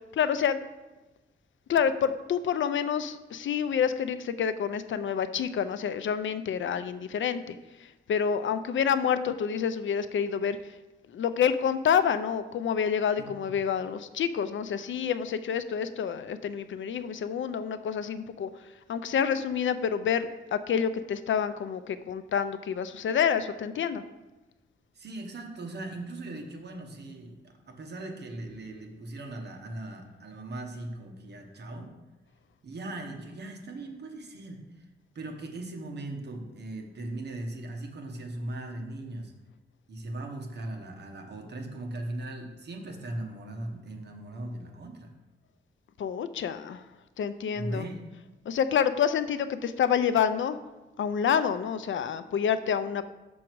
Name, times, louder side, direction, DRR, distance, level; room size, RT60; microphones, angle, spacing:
voice 1, 0.1-0.7 1.7-7.6 8.1-10.6 11.1-18.5 18.9-24.0 46.0-46.8 47.2-47.8 48.5-50.6 51.0-53.0, left 7 dB, 70° left, 12 dB, 0.4 m, -28 dB
voice 2, 13.2-13.5 24.9-31.9 32.6-34.9 35.1-39.3 39.9-45.1 47.5-48.0, right 1 dB, 55° right, 3 dB, 1.1 m, -39 dB
6.2 x 6.0 x 4.6 m, 1.1 s
wide cardioid pair, 140°, 20 cm